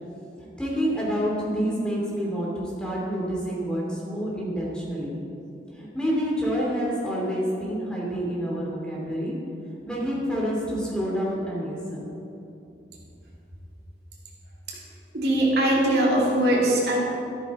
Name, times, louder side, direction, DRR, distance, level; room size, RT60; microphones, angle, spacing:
voice 1, 0.6-5.1 5.7-9.3 9.9-12.1, equal, 5° left, -5 dB, 2.8 m, -28 dB
voice 2, 15.1-17.0, right 1 dB, 60° right, -3 dB, 2.7 m, -21 dB
13.5 x 13.0 x 4.3 m, 2.7 s
head